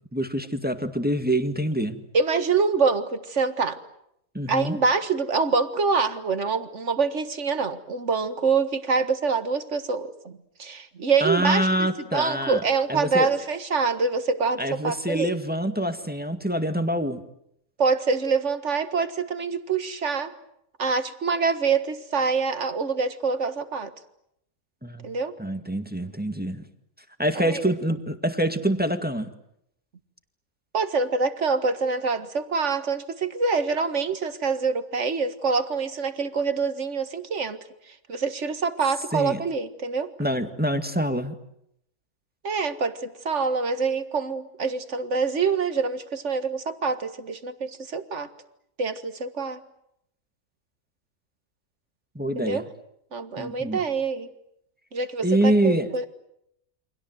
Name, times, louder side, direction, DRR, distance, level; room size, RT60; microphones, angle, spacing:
voice 1, 0.1-2.0 4.3-4.8 11.2-12.6 12.9-13.3 14.6-17.2 24.8-25.1 25.4-26.6 27.2-29.3 39.1-39.4 40.2-41.4 52.2-52.6 53.4-53.8 55.2-55.9, right 1 dB, 5° right, 8 dB, 1.8 m, -25 dB
voice 2, 2.1-3.8 4.5-15.3 17.8-20.3 20.8-23.9 25.0-25.3 27.4-27.6 30.7-37.6 38.1-40.1 42.4-48.3 48.8-49.6 52.4-52.7 53.1-54.3 54.9-56.1, right 4 dB, 55° right, 10 dB, 2.0 m, -25 dB
29.0 x 25.0 x 7.9 m, 0.76 s
omnidirectional pair, 1.5 m